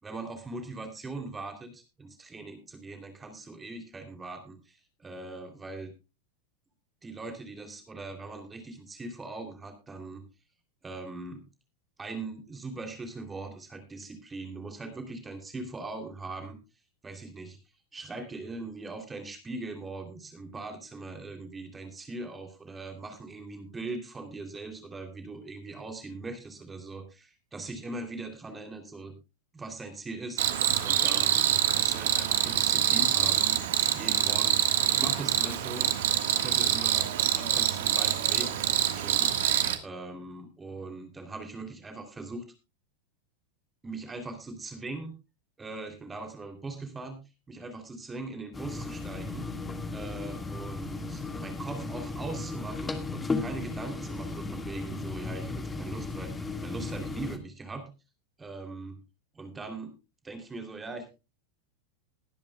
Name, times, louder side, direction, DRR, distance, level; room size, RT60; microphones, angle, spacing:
voice 1, 0.0-5.9 7.0-10.2 10.8-11.4 12.0-16.6 17.0-17.6 17.9-29.1 29.5-30.4 30.8-33.6 33.9-35.9 36.3-39.5 39.8-42.4 43.8-45.2 45.6-47.2 47.5-49.5 49.9-57.9 58.4-59.0 59.3-59.9 60.2-61.1, right 3 dB, 15° right, 6 dB, 3.0 m, -40 dB
Cricket, 30.4-39.8, right 11 dB, 65° right, 1.5 m, -25 dB
sound 1, 48.5-57.4, left 3 dB, 15° left, 1.8 m, -35 dB
21.0 x 10.5 x 2.3 m, 0.28 s
hypercardioid pair, 95°, 0 cm